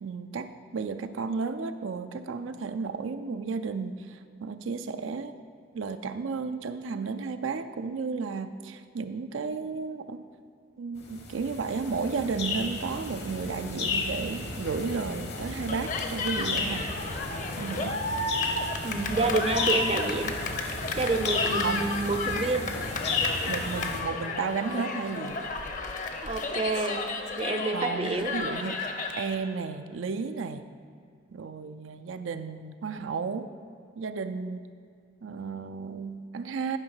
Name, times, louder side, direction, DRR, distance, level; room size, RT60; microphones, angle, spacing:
voice 1, 0.0-5.3 5.7-10.2 10.8-16.9 17.6-18.1 21.6-21.9 23.5-25.4 27.7-28.8 29.1-30.6 31.3-33.5 34.0-34.7 35.2-36.8, right 4 dB, 90° right, 9 dB, 0.5 m, -33 dB
sound 1, 11.0-24.0, left 3 dB, 60° left, 1.1 m, -33 dB
Cheering, 15.7-29.3, left 3 dB, 40° left, 0.7 m, -33 dB
voice 2, 18.8-20.3 21.0-22.7 26.2-27.0 27.4-28.3, right 3 dB, 30° right, 7 dB, 0.5 m, -28 dB
10.5 x 5.2 x 5.6 m, 2.3 s
head